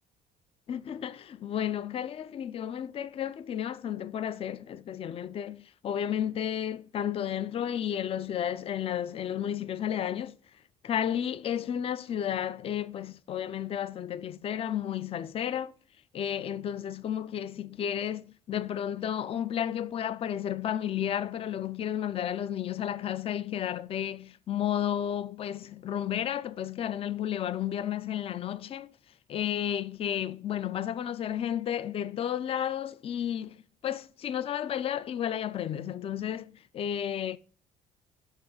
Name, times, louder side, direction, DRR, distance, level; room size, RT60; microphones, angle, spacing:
voice 1, 0.7-10.4 10.8-15.7 16.1-28.9 29.3-37.4, left 10 dB, 35° left, 0.3 m, -32 dB
7.2 x 3.8 x 4.9 m
cardioid pair, 110°, 17 cm